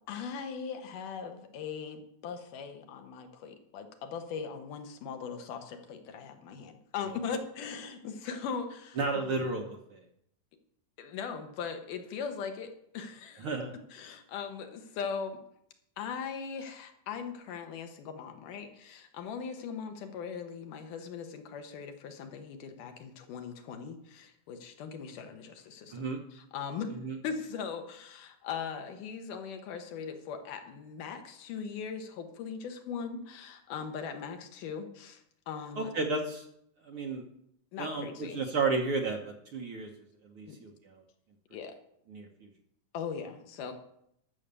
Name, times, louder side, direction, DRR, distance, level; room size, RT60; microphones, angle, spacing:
voice 1, 0.1-9.0 11.0-13.5 13.9-15.4 16.0-27.0 27.2-35.9 37.7-38.4 40.5-40.6 41.5-41.7 42.9-43.7, left 6 dB, 80° left, 6 dB, 2.8 m, -39 dB
voice 2, 9.0-10.0 13.4-13.7 25.9-26.2 27.0-27.2 35.8-36.4 36.8-37.2 37.8-39.9 40.2-41.0 42.1-42.5, right 3 dB, 60° right, 2 dB, 1.5 m, -33 dB
12.5 x 6.6 x 6.8 m, 0.74 s
omnidirectional pair, 3.6 m